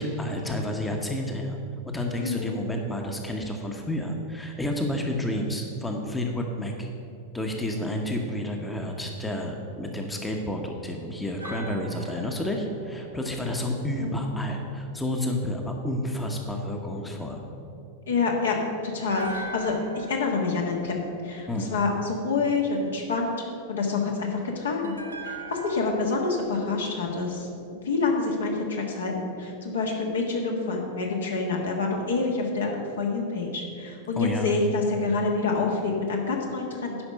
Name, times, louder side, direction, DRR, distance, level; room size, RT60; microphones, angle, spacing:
voice 1, 0.0-1.6 1.9-6.9 7.3-17.4 21.5-21.7 34.2-34.5, left 1 dB, 10° left, 2 dB, 1.0 m, -30 dB
voice 2, 2.2-2.5 14.0-14.3 18.1-18.6 18.8-21.0 21.2-25.0 25.2-37.0, left 4 dB, 65° left, 0 dB, 1.6 m, -27 dB
sound 1, 11.4-14.6 19.0-22.2 24.8-28.0 28.3-28.5, right 2 dB, 80° right, 1.1 m, -42 dB
10.0 x 5.3 x 6.6 m, 2.6 s
figure-of-eight pair, 90°, 0 cm